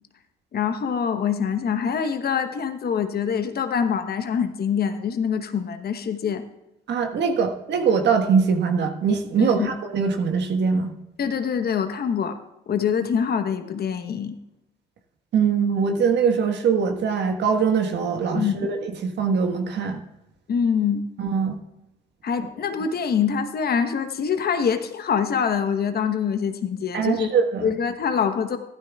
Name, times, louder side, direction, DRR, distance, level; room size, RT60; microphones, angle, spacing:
voice 1, 0.5-6.4 9.4-9.7 11.2-12.4 12.7-14.3 18.3-18.7 20.5-21.0 22.2-27.3 27.6-28.6, left 7 dB, 50° left, 8 dB, 1.1 m, -24 dB
voice 2, 6.9-10.9 15.3-20.0 21.2-21.6 26.9-27.7, right 6 dB, 60° right, 5 dB, 1.5 m, -22 dB
15.5 x 13.0 x 2.4 m, 0.94 s
hypercardioid pair, 55°, 20 cm